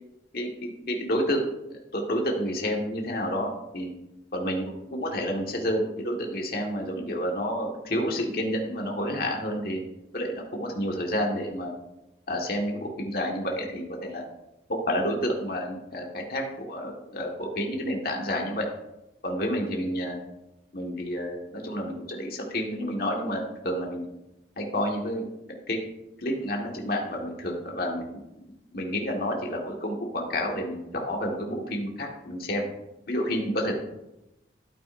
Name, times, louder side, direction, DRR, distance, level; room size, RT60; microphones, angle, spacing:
voice 1, 0.3-3.9 4.3-9.8 10.1-11.7 12.3-14.2 14.7-18.7 19.2-20.2 20.7-24.0 24.6-25.2 25.7-25.8 26.2-28.2 28.7-32.7 33.1-33.7, equal, 55° left, 0 dB, 1.6 m, -29 dB
12.5 x 8.7 x 2.6 m, 0.93 s
head